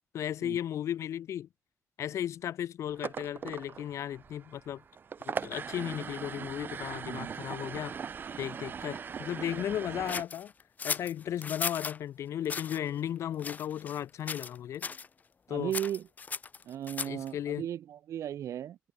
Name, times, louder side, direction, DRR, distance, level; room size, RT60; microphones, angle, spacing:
voice 1, 0.1-1.5 2.0-4.8 5.2-7.9 8.4-10.5 10.8-14.9 15.5-15.7 17.1-17.6, left 10 dB, 70° left, 0.3 m, -35 dB
sound 1, 2.9-10.2, right 6 dB, 40° right, 1.8 m, -40 dB
voice 2, 7.0-7.4 15.5-16.1 16.6-18.8, right 10 dB, 80° right, 0.5 m, -36 dB
sound 2, 10.1-12.0 12.4-12.8 13.4-14.0 14.3-14.6 14.8-15.1 15.7-17.3, left 5 dB, 35° left, 1.0 m, -36 dB
wide cardioid pair, 180°, 5 cm